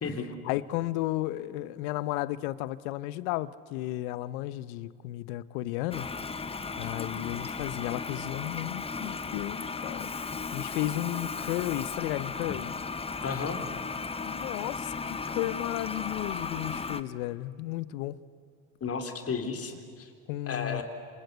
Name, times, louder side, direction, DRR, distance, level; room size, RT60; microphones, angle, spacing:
voice 1, 0.4-6.1 6.8-12.7 14.2-18.2 20.3-20.8, left 16 dB, 70° left, 1.1 m, -34 dB
Toilet flush, 5.9-17.0, left 4 dB, 15° left, 1.0 m, -36 dB
voice 2, 13.2-13.6 18.8-20.1 20.5-20.8, left 5 dB, 30° left, 3.8 m, -33 dB
27.0 x 27.0 x 8.2 m
hypercardioid pair, 85°, 44 cm